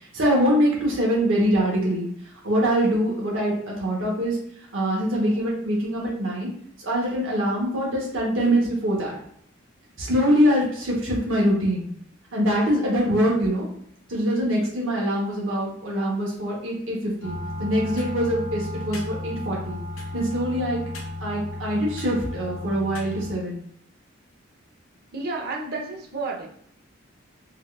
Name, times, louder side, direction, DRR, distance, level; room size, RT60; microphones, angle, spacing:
voice 1, 0.0-2.1 2.4-4.4 4.7-6.5 6.8-9.2 10.0-11.8 12.3-13.7 14.1-19.8 20.1-20.8 21.2-23.6, equal, 70° right, -3 dB, 0.9 m, -23 dB
sound 1, 17.2-23.4, left 2 dB, 75° left, 0.6 m, -34 dB
voice 2, 25.1-26.5, right 3 dB, 50° right, 1 dB, 0.6 m, -31 dB
3.7 x 2.3 x 2.3 m, 0.66 s
head